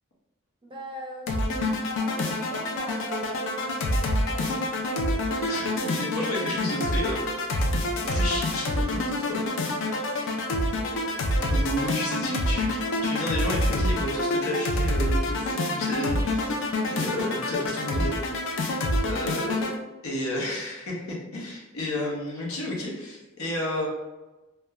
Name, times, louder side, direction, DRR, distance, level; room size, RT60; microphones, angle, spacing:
voice 1, 0.6-1.4 1.9-5.1 10.6-11.3 19.3-19.6, equal, 25° right, -2 dB, 0.5 m, -41 dB
sound 1, 1.3-19.7, left 1 dB, 65° left, 0.4 m, -27 dB
voice 2, 5.5-7.2 8.1-9.4 11.4-18.2 18.5-18.7 19.0-19.7 20.0-23.9, left 1 dB, 90° left, -2 dB, 0.7 m, -32 dB
2.8 x 2.2 x 2.3 m, 1.1 s
head